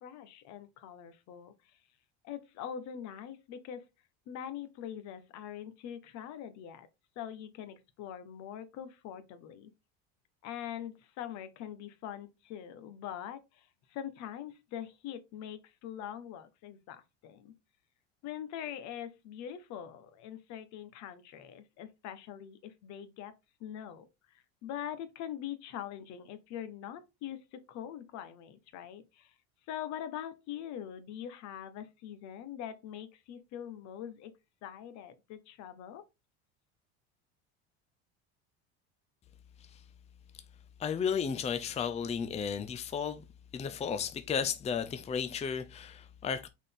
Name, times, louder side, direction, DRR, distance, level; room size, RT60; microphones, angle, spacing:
voice 1, 0.0-1.5 2.2-3.9 4.3-6.9 7.2-9.7 10.4-17.5 18.2-23.3 23.6-24.1 24.6-29.3 29.7-34.3 34.6-36.0, left 10 dB, 60° left, 1.2 m, -43 dB
voice 2, 40.8-43.2 43.5-46.5, left 7 dB, 20° left, 0.6 m, -33 dB
6.4 x 4.2 x 3.6 m
supercardioid pair, 115°, 31 cm